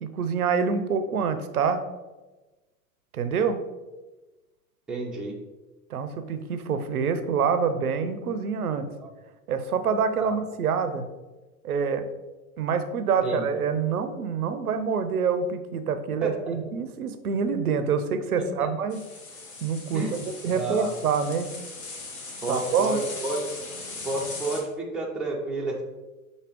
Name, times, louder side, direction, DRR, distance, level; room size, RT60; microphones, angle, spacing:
voice 1, 0.0-1.8 3.1-3.6 5.9-8.9 9.5-11.1 11.6-12.1 12.6-19.0 19.6-20.0 20.4-21.5 22.5-23.0, right 6 dB, 85° right, 10 dB, 0.5 m, -26 dB
voice 2, 4.9-5.4 10.2-10.4 13.2-13.5 16.2-16.6 18.4-18.7 19.9-20.1 20.4-20.9 22.4-23.4 24.0-25.8, right 2 dB, ahead, -2 dB, 0.4 m, -30 dB
sound 1, 18.9-24.6, left 3 dB, 60° left, 1.2 m, -39 dB
6.1 x 2.8 x 2.9 m, 1.2 s
figure-of-eight pair, 90°, 43 cm